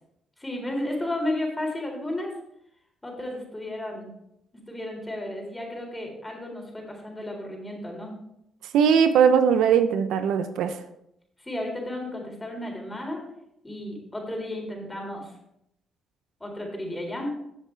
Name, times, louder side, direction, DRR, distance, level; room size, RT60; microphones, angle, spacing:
voice 1, 0.4-2.3 3.0-4.1 4.7-8.2 11.4-13.2 13.6-15.3 16.4-17.4, left 1 dB, 15° left, 1 dB, 4.0 m, -33 dB
voice 2, 8.7-10.8, right 7 dB, 85° right, 9 dB, 0.8 m, -20 dB
15.0 x 7.5 x 3.4 m, 0.80 s
cardioid pair, 90°, 0 cm